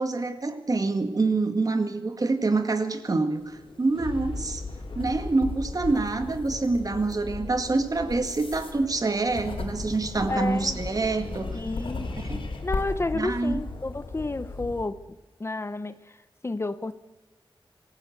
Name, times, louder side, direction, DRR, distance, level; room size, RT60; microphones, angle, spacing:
voice 1, 0.0-4.6 5.0-11.6 12.2-12.4 13.1-13.6, right 3 dB, 45° right, 7 dB, 1.9 m, -26 dB
sound 1, 3.4-14.9, left 3 dB, 65° left, 4.1 m, -39 dB
sound 2, 5.0-13.0, left 3 dB, 85° left, 4.1 m, -37 dB
voice 2, 10.3-10.8 11.5-12.1 12.6-15.0 15.4-16.2 16.4-16.9, left 2 dB, 30° left, 13 dB, 0.8 m, -31 dB
25.5 x 15.5 x 8.1 m, 1.1 s
wide cardioid pair, 120°, 9 cm